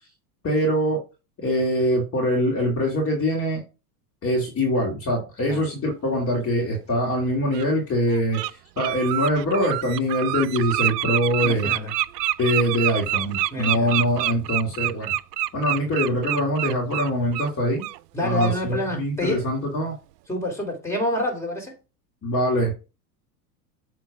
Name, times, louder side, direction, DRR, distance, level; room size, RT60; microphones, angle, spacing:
voice 1, 0.4-1.0 1.4-3.6 4.2-11.7 12.4-15.1 15.5-17.9 18.2-19.9 22.2-22.7, equal, 25° left, 2.5 m, -23 dB
Bird, 6.7-6.8 7.5-7.7 8.1-8.5 8.8-17.5 17.8-18.0 18.4-18.6, right 15 dB, 80° right, 0.6 m, -27 dB
voice 2, 11.4-11.9 13.5-13.9 18.1-19.5 20.3-21.7, left 1 dB, 5° left, 3.3 m, -27 dB
8.0 x 3.8 x 4.8 m
hypercardioid pair, 110°, 49 cm